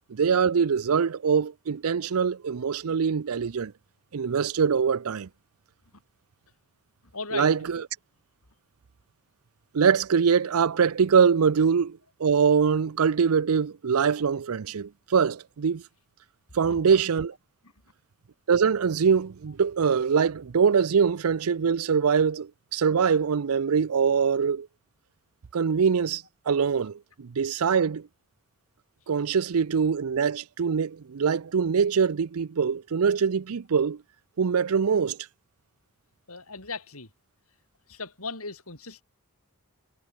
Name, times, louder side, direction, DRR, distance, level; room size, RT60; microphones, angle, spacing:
voice 1, 0.1-3.7 4.1-5.3 7.3-7.8 9.7-15.8 16.5-17.3 18.5-24.7 25.5-28.1 29.1-34.0 34.4-35.2, right 6 dB, 80° right, 0.5 m, -23 dB
voice 2, 7.1-7.8 16.7-17.0 36.3-37.1 37.9-39.0, left 4 dB, 80° left, 7.9 m, -38 dB
head